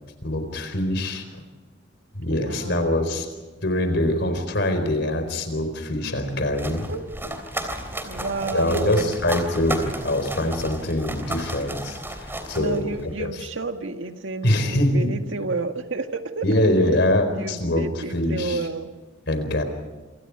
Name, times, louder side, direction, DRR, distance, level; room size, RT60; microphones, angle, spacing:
voice 1, 0.2-1.4 2.1-3.3 3.6-6.9 8.5-12.8 13.2-13.4 14.4-15.1 16.4-18.6 19.3-19.6, left 1 dB, 60° left, 8 dB, 4.4 m, -24 dB
voice 2, 2.3-3.3 6.9-7.0 8.0-9.2 12.6-16.7 17.3-18.9, right 3 dB, 80° right, 6 dB, 1.8 m, -31 dB
sound 1, 6.2-13.2, right 1 dB, 10° right, 3.3 m, -34 dB
28.5 x 27.0 x 4.9 m, 1.3 s
head